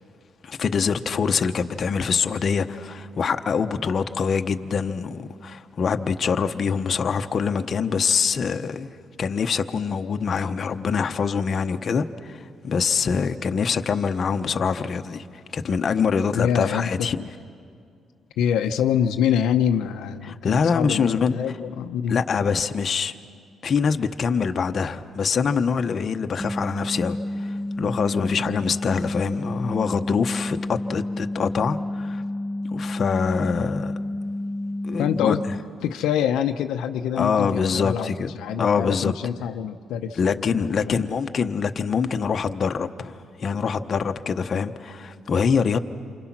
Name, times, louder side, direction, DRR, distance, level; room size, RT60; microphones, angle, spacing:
voice 1, 0.4-8.9 9.2-15.3 15.5-17.2 20.4-21.3 22.1-23.1 23.6-32.2 32.7-33.9 34.8-35.3 37.2-38.3 38.6-39.1 40.2-45.8, left 6 dB, 50° left, 7 dB, 0.9 m, -24 dB
voice 2, 16.3-17.3 18.4-22.2 28.4-28.6 35.0-35.4 35.8-41.1, left 9 dB, 90° left, 6 dB, 0.7 m, -25 dB
sound 1, 26.4-35.6, left 1 dB, 10° right, 1.5 m, -30 dB
28.5 x 25.0 x 6.0 m, 2.3 s
cardioid pair, 90°, 0 cm